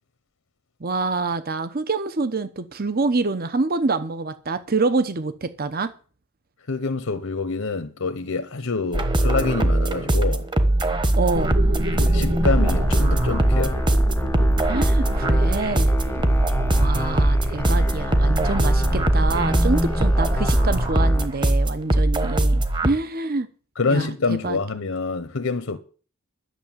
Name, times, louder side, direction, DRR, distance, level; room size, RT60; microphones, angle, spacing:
voice 1, 0.8-5.9 11.2-11.5 14.7-15.9 16.8-23.5 23.9-24.6, right 3 dB, 45° right, 0.9 m, -26 dB
voice 2, 6.7-10.5 11.9-13.8 23.8-25.8, left 4 dB, 75° left, 1.0 m, -26 dB
sound 1, 8.9-22.9, right 1 dB, 20° right, 1.2 m, -21 dB
sound 2, 11.3-20.9, equal, 70° right, 3.0 m, -29 dB
sound 3, 12.4-21.3, left 1 dB, 10° left, 0.6 m, -30 dB
11.5 x 6.7 x 9.0 m
head